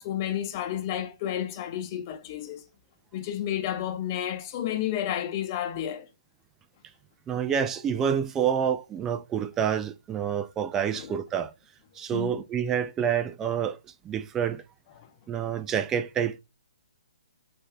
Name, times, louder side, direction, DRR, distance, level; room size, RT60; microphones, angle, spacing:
voice 1, 0.0-2.6 3.1-6.1 10.9-11.1 12.1-12.4 15.0-15.1, left 11 dB, 30° left, 0.8 m, -31 dB
voice 2, 7.3-11.5 12.0-13.8 14.0-14.6 15.3-16.4, right 8 dB, 15° right, 0.3 m, -28 dB
5.4 x 2.6 x 3.4 m
figure-of-eight pair, 130°, 3 cm